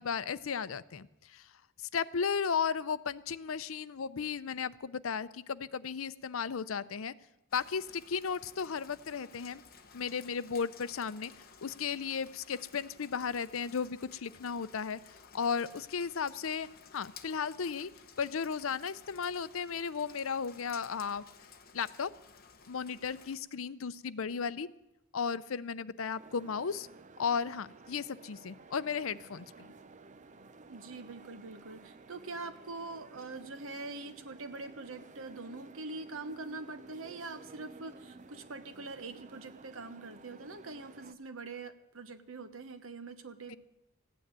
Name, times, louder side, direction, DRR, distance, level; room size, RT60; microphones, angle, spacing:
voice 1, 0.0-1.5 1.8-7.1 7.5-9.6 9.9-11.3 11.6-15.0 15.3-17.9 18.2-21.2 21.7-22.1 22.7-24.7 25.1-26.9 27.2-29.7 43.5-43.6, left 6 dB, 80° left, 16 dB, 0.6 m, -35 dB
Rain, 7.5-23.4, left 6 dB, 45° left, 1.1 m, -55 dB
sound 1, 26.2-41.1, right 3 dB, 35° right, 0.6 m, -54 dB
voice 2, 30.7-43.6, right 3 dB, 75° right, 10 dB, 1.2 m, -44 dB
15.5 x 9.3 x 8.8 m, 0.89 s
head